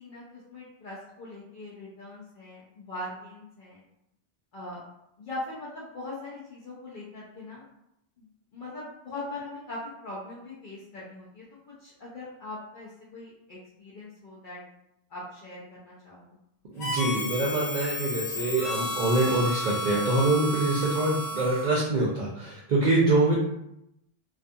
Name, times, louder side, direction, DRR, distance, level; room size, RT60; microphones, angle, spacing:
voice 1, 0.0-3.8 4.5-4.8 5.2-7.6 8.2-8.3 8.5-14.6 15.1-16.4, left 2 dB, 60° left, -7 dB, 0.7 m, -41 dB
voice 2, 16.7-23.3, right 2 dB, 55° right, -5 dB, 0.5 m, -25 dB
Harmonica, 16.8-21.8, equal, 90° left, 1.0 m, -32 dB
2.4 x 2.3 x 2.6 m, 0.81 s
omnidirectional pair, 1.1 m